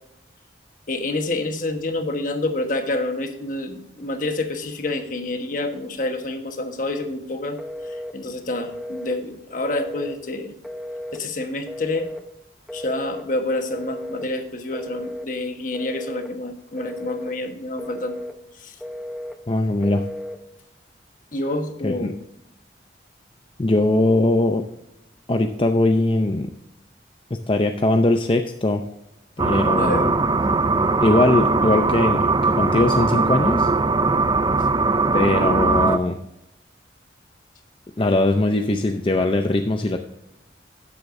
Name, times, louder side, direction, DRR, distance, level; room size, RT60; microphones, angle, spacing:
voice 1, 0.9-7.6 7.9-10.5 11.1-12.1 12.7-18.2 18.6-18.8 21.3-22.1 29.8-30.1 34.6-34.7, left 2 dB, 45° left, 6 dB, 1.2 m, -28 dB
Telephone, 7.6-8.2 8.6-9.2 9.6-10.2 10.6-11.2 11.7-12.2 12.7-13.3 13.7-14.3 14.7-15.3 15.7-16.3 16.8-17.3 17.8-18.4 18.8-19.4 19.8-20.4, left 1 dB, ahead, 0.9 m, -34 dB
voice 2, 19.5-20.0 21.8-22.2 23.6-24.6 25.3-26.5 27.3-28.8 29.4-30.2 31.0-33.7 35.1-36.2 38.0-40.0, left 2 dB, 30° left, 5 dB, 0.5 m, -20 dB
sound 1, 29.4-36.0, right 3 dB, 25° right, 0.4 m, -20 dB
12.0 x 9.9 x 2.6 m, 0.85 s
head